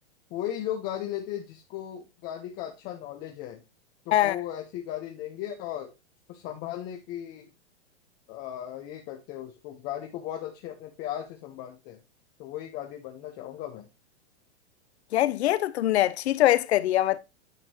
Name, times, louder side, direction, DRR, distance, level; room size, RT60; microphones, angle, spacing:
voice 1, 0.3-3.6 4.1-5.9 6.3-7.5 8.3-12.0 12.4-13.9, left 11 dB, 25° left, 0.9 m, -36 dB
voice 2, 15.1-17.2, left 14 dB, 65° left, 0.8 m, -23 dB
9.5 x 5.8 x 3.0 m
hypercardioid pair, 155°, 35 cm